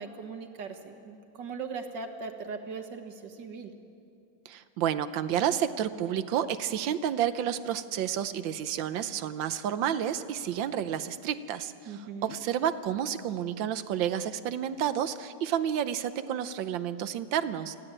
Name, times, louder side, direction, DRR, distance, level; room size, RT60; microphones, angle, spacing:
voice 1, 0.0-3.7 11.9-12.3, right 4 dB, 70° right, 6 dB, 2.1 m, -39 dB
voice 2, 4.4-17.8, right 9 dB, 85° right, 12 dB, 1.5 m, -30 dB
25.0 x 15.5 x 8.9 m, 2.6 s
omnidirectional pair, 2.0 m